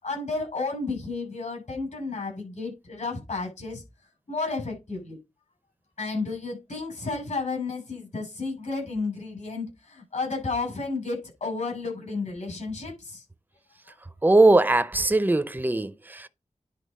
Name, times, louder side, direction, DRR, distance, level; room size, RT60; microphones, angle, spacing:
voice 1, 0.0-3.8 4.3-5.2 6.0-13.2, left 3 dB, 70° left, 7.1 m, -32 dB
voice 2, 14.2-16.3, right 2 dB, 15° right, 0.6 m, -20 dB
10.0 x 4.1 x 5.3 m
wide cardioid pair, 95°, 13 cm